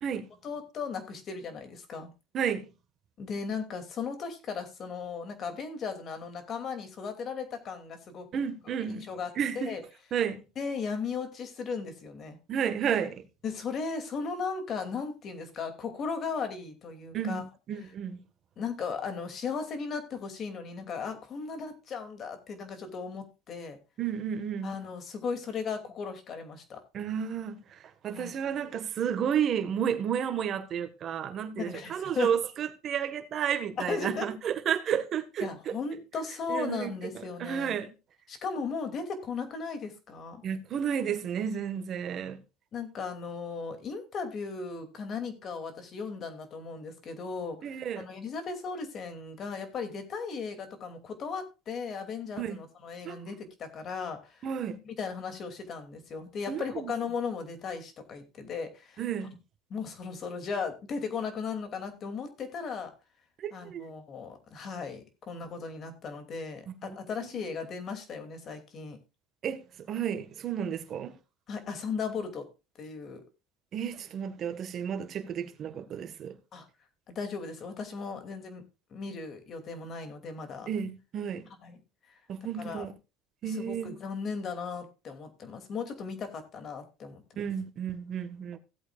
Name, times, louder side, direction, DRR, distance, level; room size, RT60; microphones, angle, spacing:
voice 1, 0.4-2.1 3.2-8.3 8.9-9.3 9.5-9.8 10.6-12.4 13.4-17.4 18.6-23.8 24.6-26.8 28.1-28.3 31.6-32.3 33.9-34.3 35.4-37.7 38.3-40.4 42.7-47.6 48.0-54.4 54.9-59.0 59.7-62.9 63.5-69.0 71.5-72.5 72.8-73.2 76.5-76.7 77.1-78.6 78.9-80.7 81.6-81.8 82.6-82.8 83.4-87.2, left 5 dB, 40° left, 2.7 m, -36 dB
voice 2, 2.3-2.7 8.3-9.1 9.3-9.8 10.1-10.4 12.5-13.2 17.1-18.2 24.0-24.7 26.9-35.8 36.5-37.9 40.4-42.4 47.6-48.1 52.4-52.6 53.0-53.2 54.4-54.8 56.5-56.9 59.0-59.3 63.4-63.9 66.7-67.4 69.4-71.2 73.7-76.4 80.7-81.5 82.3-82.9 83.4-84.0 87.4-88.6, right 8 dB, 40° right, 1.6 m, -32 dB
16.5 x 8.1 x 2.5 m
supercardioid pair, 125°, 0 cm